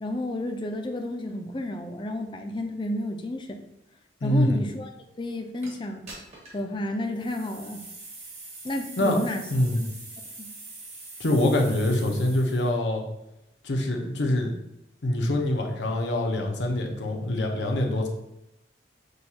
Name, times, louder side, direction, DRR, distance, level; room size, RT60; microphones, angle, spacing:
voice 1, 0.0-3.6 4.2-4.9 5.2-6.1 6.5-7.8 8.6-9.4 9.8-9.9 10.4-10.5, left 1 dB, 25° left, 5 dB, 0.4 m, -31 dB
voice 2, 4.2-4.6 9.0-9.2 9.5-9.8 11.2-13.0 13.6-14.5 15.0-18.1, left 1 dB, 80° left, 2 dB, 0.7 m, -24 dB
sound 1, 5.6-5.7 6.1-6.6 7.1-12.7, right 2 dB, 40° right, 1.1 m, -43 dB
6.3 x 2.3 x 2.8 m, 0.86 s
head